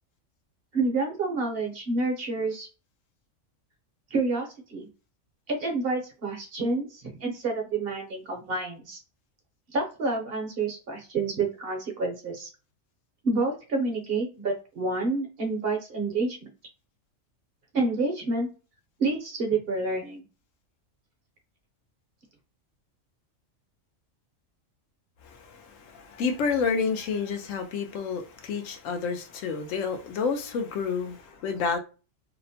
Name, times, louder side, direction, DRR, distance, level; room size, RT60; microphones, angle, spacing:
voice 1, 0.7-2.7 4.1-4.9 5.5-9.0 9.7-12.5 13.2-16.5 17.7-18.5 19.0-20.2, right 3 dB, 55° right, 0.8 m, -28 dB
voice 2, 25.2-31.8, left 5 dB, 75° left, 0.9 m, -29 dB
2.8 x 2.1 x 2.6 m
omnidirectional pair, 1.3 m